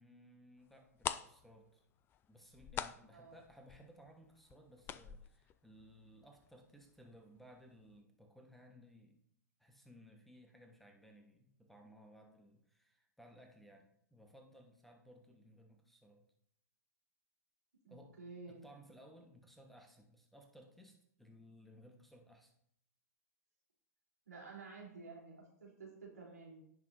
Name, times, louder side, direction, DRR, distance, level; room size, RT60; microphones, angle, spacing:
voice 1, 0.0-1.8 2.3-9.2 9.6-16.3 17.9-18.2 18.5-22.5, equal, ahead, 3 dB, 1.2 m, -60 dB
sound 1, 0.7-0.8 1.0-6.6 6.8-6.9 7.4-7.6 7.9-8.0, left 9 dB, 25° left, 0.4 m, -44 dB
voice 2, 17.8-18.6 24.3-26.6, right 4 dB, 75° right, -2 dB, 3.5 m, -52 dB
16.5 x 5.9 x 2.6 m, 0.71 s
figure-of-eight pair, 100°, 9 cm